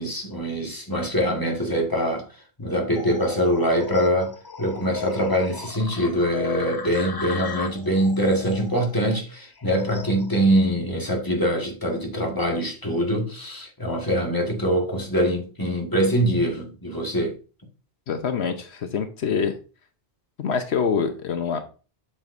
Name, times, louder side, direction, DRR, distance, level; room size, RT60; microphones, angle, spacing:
voice 1, 0.0-2.2 2.6-17.3, equal, 20° left, 1.6 m, -23 dB
sound 1, 2.9-10.4, left 5 dB, 35° left, 0.3 m, -38 dB
voice 2, 18.1-19.5 20.4-21.6, left 6 dB, 75° left, 1.1 m, -25 dB
7.5 x 7.1 x 2.6 m
omnidirectional pair, 1.1 m